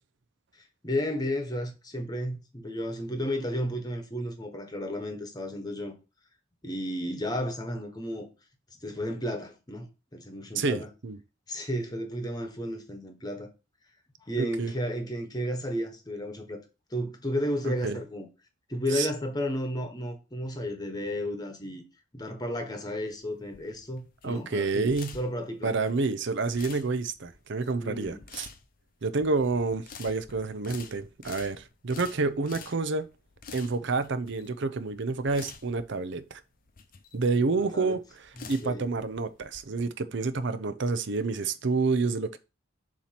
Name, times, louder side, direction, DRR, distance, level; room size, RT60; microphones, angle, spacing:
voice 1, 0.6-5.9 6.6-8.3 8.8-10.9 11.5-13.5 14.3-16.6 16.9-18.3 18.7-21.8 22.1-25.8 27.8-28.2 37.5-38.0 38.4-38.9, equal, 20° left, 1.2 m, -33 dB
voice 2, 10.5-11.2 14.4-14.7 17.6-18.0 18.9-19.1 24.2-25.2 25.6-28.5 29.0-33.1 33.5-36.4 37.1-38.0 38.5-42.4, right 3 dB, 60° right, 0.6 m, -29 dB
sound 1, 23.1-39.6, left 5 dB, 45° left, 0.7 m, -48 dB
7.2 x 3.0 x 5.8 m
head